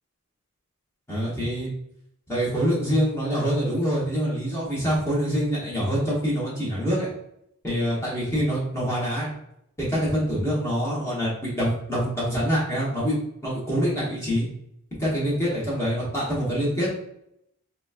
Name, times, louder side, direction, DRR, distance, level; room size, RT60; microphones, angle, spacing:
voice 1, 1.1-1.7 2.3-7.1 7.6-9.3 9.8-13.1 13.4-14.5 15.0-16.9, equal, 10° left, -7 dB, 1.0 m, -25 dB
3.9 x 2.2 x 2.4 m, 0.77 s
head